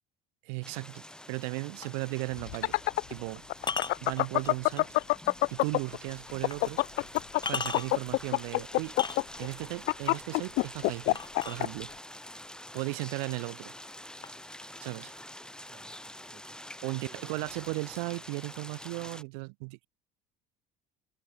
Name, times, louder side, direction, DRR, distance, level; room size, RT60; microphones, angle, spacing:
voice 1, 0.4-2.8 3.1-3.4 4.0-4.9 5.5-6.8 7.5-9.0 9.4-11.9 12.7-13.7 14.8-15.1 16.8-19.9, right 32 dB, 75° right, 2.3 m, -36 dB
sound 1, 0.6-19.2, left 1 dB, 5° left, 4.6 m, -47 dB
sound 2, 1.8-2.0 3.6-5.0 5.5-5.6 6.5-6.6 7.2-8.1 8.8-9.6 11.1-12.1 13.0-13.1 13.5-14.0 14.2-15.2, left 5 dB, 20° left, 1.1 m, -37 dB
sound 3, 2.4-6.0 6.3-11.7, left 22 dB, 60° left, 0.5 m, -25 dB
voice 2, 15.7-17.2, right 7 dB, 40° right, 7.9 m, -55 dB
hypercardioid pair, 70°, 20 cm